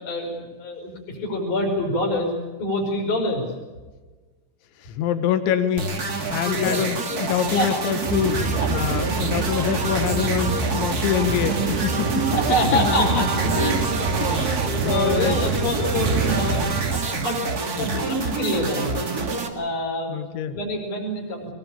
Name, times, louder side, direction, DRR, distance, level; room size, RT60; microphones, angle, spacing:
voice 1, 0.0-2.3 2.6-3.4 6.4-6.8 7.5-7.7 8.6-8.7 12.3-13.3 14.3-14.5 14.8-16.6 16.9-19.2 19.5-20.1 20.5-21.5, left 1 dB, 45° left, -3 dB, 6.5 m, -26 dB
voice 2, 4.8-12.3 12.7-13.9 14.2-15.4 20.1-20.6, left 9 dB, 85° left, 10 dB, 3.7 m, -26 dB
sound 1, 5.8-19.5, right 4 dB, 35° right, 1.5 m, -27 dB
sound 2, 8.0-17.0, right 4 dB, 55° right, 3.7 m, -26 dB
sound 3, 9.4-14.4, right 6 dB, 80° right, 4.5 m, -34 dB
23.5 x 20.5 x 8.6 m, 1.3 s
omnidirectional pair, 5.2 m